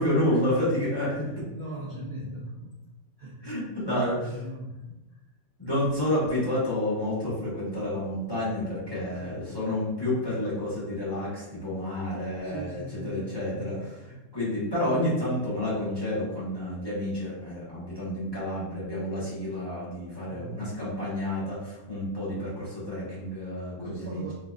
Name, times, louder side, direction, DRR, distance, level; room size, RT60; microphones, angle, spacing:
voice 1, 0.0-1.2 3.4-4.1 5.6-24.2, left 1 dB, 15° left, -10 dB, 1.3 m, -29 dB
voice 2, 1.2-2.8 3.2-5.2 9.1-9.4 12.4-13.7 20.3-20.7 23.8-24.3, right 1 dB, 50° right, -8 dB, 0.8 m, -39 dB
3.8 x 3.2 x 2.5 m, 0.98 s
omnidirectional pair, 1.7 m